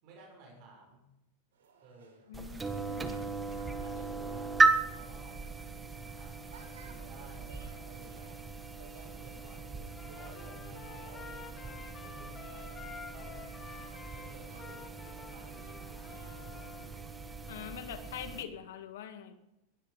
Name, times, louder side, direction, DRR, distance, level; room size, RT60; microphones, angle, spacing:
voice 1, 0.0-1.1 1.8-3.0 3.8-5.5 6.1-8.3 9.1-9.6 10.1-13.5 14.1-16.2 16.5-17.7, right 2 dB, 50° right, 0 dB, 6.3 m, -56 dB
sound 1, 1.5-16.9, right 5 dB, 85° right, 4.2 m, -60 dB
voice 2, 2.3-3.1 17.5-19.3, left 9 dB, 75° left, 7 dB, 2.2 m, -43 dB
sound 2, 2.3-18.4, right 4 dB, 15° right, 1.5 m, -36 dB
Trumpet, 9.9-17.0, left 5 dB, 25° left, 3.6 m, -50 dB
20.5 x 11.5 x 5.3 m, 0.91 s
hypercardioid pair, 125°, 0 cm